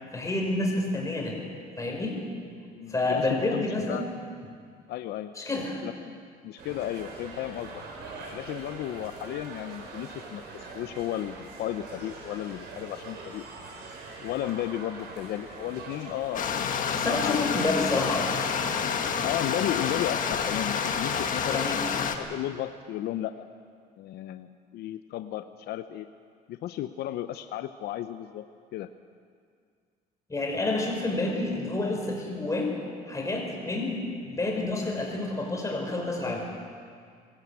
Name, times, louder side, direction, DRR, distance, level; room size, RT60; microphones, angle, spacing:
voice 1, 0.1-1.4 1.8-2.2 2.9-4.1 5.4-5.8 17.0-18.3 21.5-21.8 30.3-32.7 33.1-36.5, left 2 dB, 20° left, 0 dB, 5.2 m, -29 dB
voice 2, 2.7-4.1 4.9-5.3 5.8-7.8 8.3-13.5 14.2-17.6 17.9-18.1 19.2-23.5 24.0-26.1 26.5-28.5 28.7-28.9, left 12 dB, 75° left, 10 dB, 0.7 m, -34 dB
sound 1, 6.6-21.8, right 3 dB, 85° right, 4.3 m, -43 dB
Stream, 16.3-22.1, left 7 dB, 50° left, 1.6 m, -28 dB
22.5 x 15.0 x 8.2 m, 2.1 s
cardioid pair, 110°, 17 cm